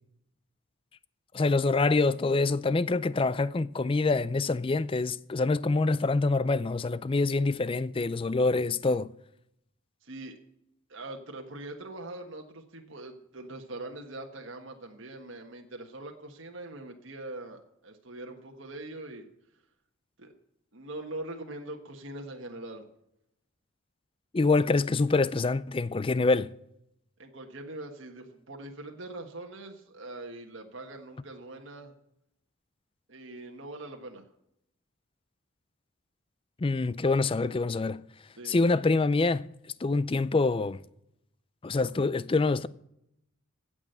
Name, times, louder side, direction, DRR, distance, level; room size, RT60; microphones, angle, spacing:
voice 1, 1.3-9.1 24.3-26.5 36.6-38.0 38.5-39.4 39.8-40.8 41.6-42.7, left 3 dB, 25° left, 0.4 m, -25 dB
voice 2, 10.0-10.4 10.9-19.3 20.2-20.3 20.7-22.9 27.2-31.9 33.1-34.2 38.4-38.6, right 2 dB, 60° right, 1.5 m, -42 dB
16.0 x 6.2 x 7.8 m
head